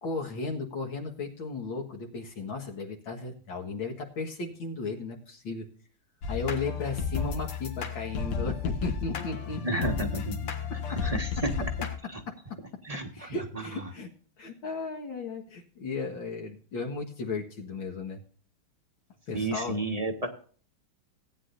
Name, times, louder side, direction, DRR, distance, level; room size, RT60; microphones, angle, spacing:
voice 1, 0.0-5.6 6.3-10.1 12.3-12.4 13.1-14.1 14.4-18.2 19.3-19.8, left 4 dB, 65° left, 0 dB, 2.3 m, -35 dB
sound 1, 6.2-12.0, left 6 dB, 90° left, 2.5 m, -33 dB
voice 2, 9.6-10.5 11.0-11.3 11.6-11.7 12.1-12.2 12.8-13.3 13.5-13.6 19.3-20.3, right 2 dB, 20° right, 4 dB, 1.4 m, -31 dB
17.5 x 9.8 x 2.6 m, 0.44 s
omnidirectional pair, 2.4 m